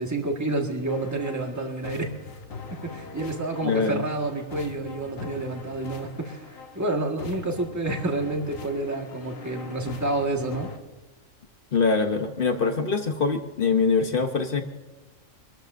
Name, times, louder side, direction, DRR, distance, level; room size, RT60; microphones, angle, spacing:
voice 1, 0.0-2.1 2.7-10.7, right 2 dB, 15° right, 2 dB, 1.6 m, -29 dB
sound 1, 0.9-10.8, left 4 dB, 85° left, 1.6 m, -42 dB
voice 2, 3.6-4.0 11.7-14.6, left 4 dB, 45° left, 6 dB, 1.0 m, -23 dB
25.0 x 13.5 x 2.6 m, 1.2 s
omnidirectional pair, 1.4 m